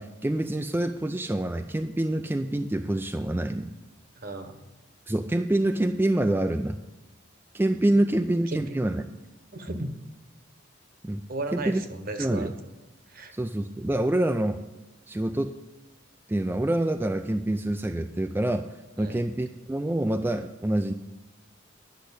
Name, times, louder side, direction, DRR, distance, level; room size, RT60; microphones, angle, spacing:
voice 1, 0.0-3.7 5.1-6.8 7.5-9.0 11.0-11.2 11.5-11.8 12.2-12.5 13.3-14.6 15.1-15.5 16.3-18.7 19.0-20.9, right 1 dB, 10° right, 5 dB, 0.4 m, -26 dB
voice 2, 4.2-4.6 8.5-8.6 9.5-9.9 11.3-12.5 13.1-13.3 19.0-19.2, right 2 dB, 50° right, 8 dB, 1.1 m, -35 dB
10.5 x 6.5 x 8.2 m, 1.1 s
head